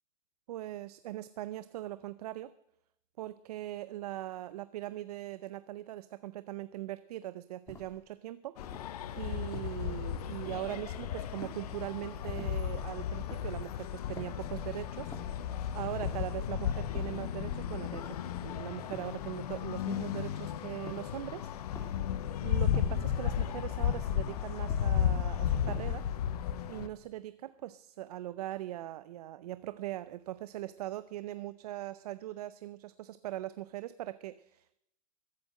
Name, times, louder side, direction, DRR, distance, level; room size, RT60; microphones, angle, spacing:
voice 1, 0.5-2.5 3.2-8.6 9.2-18.2 18.4-21.5 21.8-22.0 22.4-26.1 26.7-34.8, right 14 dB, 90° right, 15 dB, 0.6 m, -41 dB
sound 1, 7.7-8.1 8.6-9.0 9.5-9.9 10.5-10.9 11.4-11.8 12.4-12.7 13.3-13.6 14.2-14.6 15.1-15.5 16.0-16.4 16.9-17.4 17.9-18.4 18.9-19.3 19.9-20.3 20.9-21.2 21.7-22.2 22.7-23.1 23.7-24.1 24.7-25.1 25.7-26.1, left 1 dB, 15° left, 2.7 m, -49 dB
sound 2, 8.6-26.9, left 9 dB, 85° left, 1.0 m, -34 dB
14.0 x 8.7 x 7.6 m, 0.81 s
supercardioid pair, 125°, 19 cm